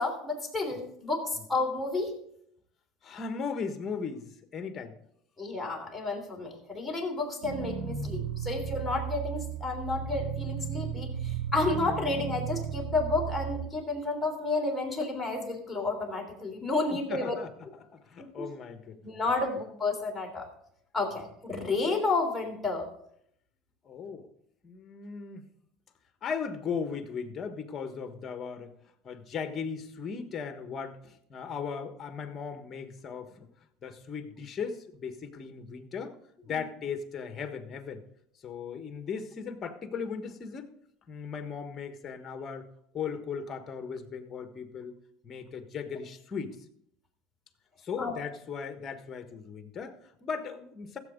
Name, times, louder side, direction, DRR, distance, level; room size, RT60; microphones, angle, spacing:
voice 1, 0.0-2.1 5.4-17.4 18.2-18.5 19.0-20.5 20.9-22.9 48.0-48.2, left 3 dB, 10° left, -1 dB, 3.3 m, -31 dB
voice 2, 3.0-5.0 16.9-19.1 23.8-24.3 24.6-25.5 26.2-28.7 29.0-33.5 33.8-36.1 36.4-38.0 38.4-40.7 41.1-42.7 42.9-44.9 45.2-46.6 47.8-51.0, left 6 dB, 35° left, 8 dB, 1.4 m, -37 dB
sound 1, 7.4-13.6, right 8 dB, 75° right, 1.6 m, -35 dB
15.0 x 8.0 x 3.7 m, 0.70 s
supercardioid pair, 105°, 0 cm